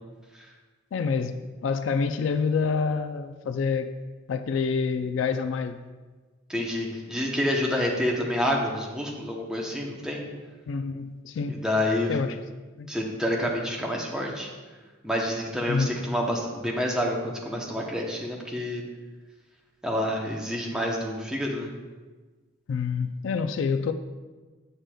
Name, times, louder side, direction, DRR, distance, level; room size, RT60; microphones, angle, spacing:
voice 1, 0.9-1.3 1.6-3.9 4.3-5.8 10.7-11.6 12.1-12.4 12.8-12.9 15.7-15.9 22.7-23.9, left 5 dB, 75° left, 9 dB, 0.3 m, -27 dB
voice 2, 6.5-10.2 11.5-12.1 12.9-14.5 15.0-18.8 19.8-21.7, left 1 dB, 5° right, -1 dB, 0.7 m, -28 dB
7.4 x 6.5 x 2.2 m, 1.3 s
head